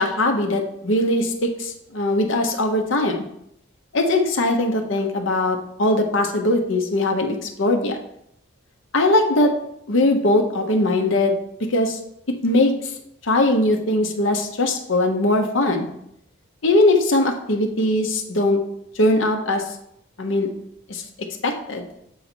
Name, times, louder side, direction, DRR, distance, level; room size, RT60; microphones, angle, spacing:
voice 1, 0.0-3.2 3.9-8.0 8.9-9.5 9.9-11.4 11.7-12.0 12.3-12.9 13.2-15.9 16.6-18.6 18.9-19.6 20.2-20.5 20.9-21.0 21.4-21.9, left 1 dB, 75° left, 3 dB, 0.9 m, -20 dB
7.4 x 4.0 x 4.4 m, 0.74 s
head